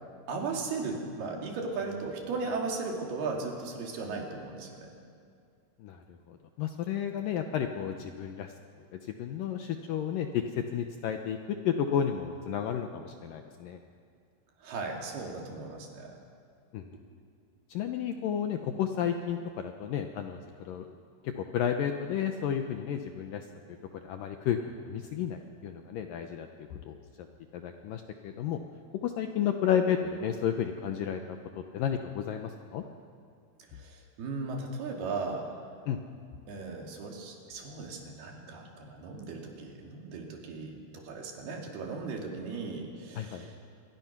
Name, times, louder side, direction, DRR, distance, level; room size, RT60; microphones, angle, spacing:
voice 1, 0.3-4.9 14.6-16.2 33.7-35.5 36.5-43.5, right 4 dB, 70° right, 1 dB, 4.3 m, -37 dB
voice 2, 5.8-8.5 9.0-11.4 11.7-13.8 16.7-16.8 17.7-20.9 21.2-23.5 23.9-27.0 27.5-28.6 29.0-32.8 35.9-36.0 43.2-43.5, left 8 dB, 75° left, 5 dB, 2.1 m, -32 dB
26.0 x 22.0 x 6.0 m, 2.2 s
omnidirectional pair, 4.8 m